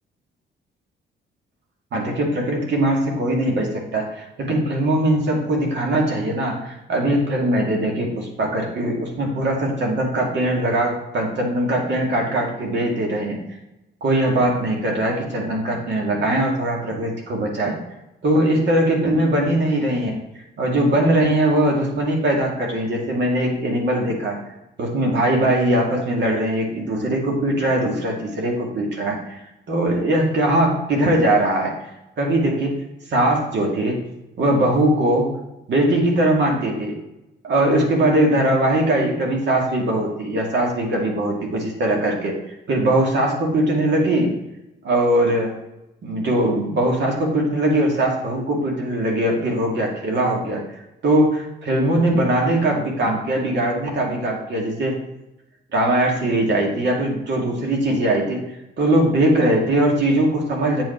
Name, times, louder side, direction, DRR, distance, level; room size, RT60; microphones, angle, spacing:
voice 1, 1.9-13.5 14.0-17.8 18.2-20.2 20.6-24.4 24.8-29.4 29.7-31.7 32.2-32.8 33.1-34.0 34.4-35.3 35.7-37.0 37.4-42.4 42.7-44.4 44.8-45.5 46.0-54.9 55.7-58.4 58.8-60.8, right 1 dB, 65° right, 0 dB, 2.2 m, -21 dB
8.7 x 5.6 x 4.4 m, 0.93 s
cardioid pair, 90°, 20 cm